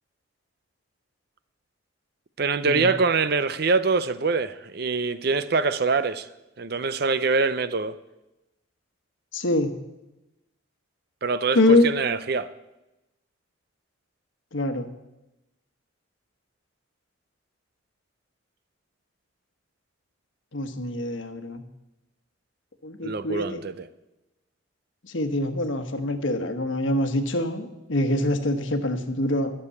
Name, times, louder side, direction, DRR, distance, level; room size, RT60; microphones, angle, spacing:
voice 1, 2.4-6.3 6.6-8.0 11.2-12.5 23.0-23.9, right 4 dB, 50° right, 14 dB, 0.6 m, -24 dB
voice 2, 9.3-9.7 11.5-11.9 14.5-14.9 20.5-21.6 22.8-23.6 25.0-29.5, left 1 dB, 70° left, 8 dB, 1.2 m, -24 dB
13.0 x 6.9 x 8.3 m, 0.97 s
head